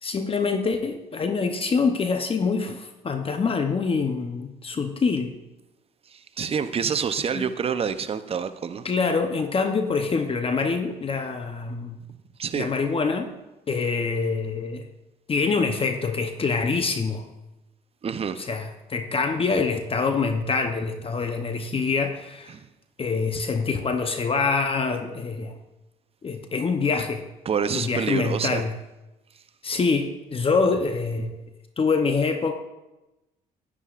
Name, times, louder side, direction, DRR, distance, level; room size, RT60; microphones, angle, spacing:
voice 1, 0.0-5.3 7.3-7.5 8.8-12.0 12.5-13.3 13.7-14.9 15.3-17.2 18.4-22.5 23.0-25.6 26.2-27.2 27.7-28.7 29.6-31.3 31.8-32.5, left 4 dB, 35° left, 0.8 m, -25 dB
voice 2, 6.1-8.8 12.4-12.7 18.0-18.4 22.5-22.7 27.4-28.6, right 6 dB, 35° right, 0.6 m, -27 dB
10.0 x 9.9 x 2.5 m
supercardioid pair, 75°, 16 cm